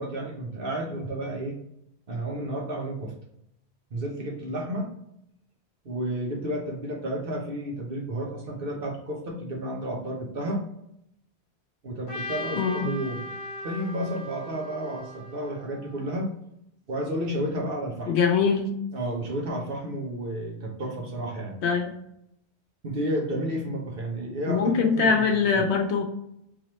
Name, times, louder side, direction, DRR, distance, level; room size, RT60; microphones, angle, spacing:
voice 1, 0.0-1.6 2.1-3.1 3.9-4.9 5.8-10.6 11.8-13.2 13.6-16.3 16.9-18.1 18.9-21.6 22.8-25.2 25.5-25.6, right 1 dB, 60° right, 0 dB, 1.1 m, -31 dB
Trumpet, 12.1-16.2, equal, 30° left, 0.9 m, -38 dB
voice 2, 12.5-12.9 18.1-18.8 21.6-22.0 24.5-26.0, left 5 dB, 80° left, 4 dB, 1.0 m, -23 dB
3.7 x 3.1 x 3.0 m, 0.78 s
omnidirectional pair, 1.1 m